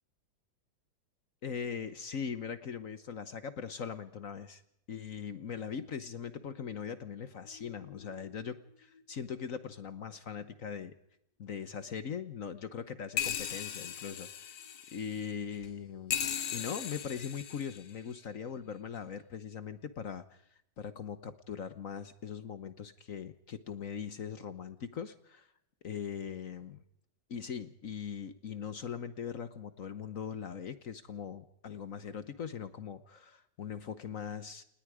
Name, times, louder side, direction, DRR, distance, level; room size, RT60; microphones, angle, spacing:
voice 1, 1.4-4.6 4.9-10.9 11.4-14.6 14.9-16.2 16.5-20.4 20.8-25.5 25.8-26.8 27.3-34.6, left 7 dB, 50° left, 12 dB, 1.2 m, -40 dB
sound 1, 7.5-8.5 8.9-9.0 9.3-9.4 13.2-15.7 16.1-18.1 19.0-19.1, left 9 dB, 70° left, 1.8 m, -38 dB
29.0 x 19.5 x 4.9 m, 0.76 s
omnidirectional pair, 2.0 m